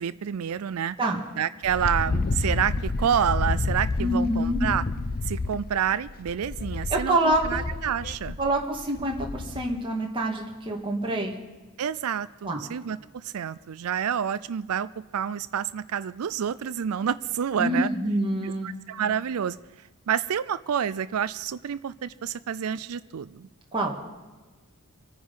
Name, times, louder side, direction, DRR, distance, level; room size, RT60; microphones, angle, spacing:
voice 1, 0.0-1.0 1.4-4.8 5.2-8.4 11.8-17.9 18.4-19.6 20.1-23.5, right 8 dB, 75° right, 14 dB, 0.4 m, -28 dB
Wind, 1.6-9.8, left 3 dB, 40° left, 0.6 m, -30 dB
voice 2, 4.0-4.6 6.9-7.6 8.4-11.4 12.4-12.6 17.6-18.7 23.7-23.9, right 1 dB, 25° right, -1 dB, 2.1 m, -26 dB
25.5 x 9.6 x 5.6 m, 1.3 s
head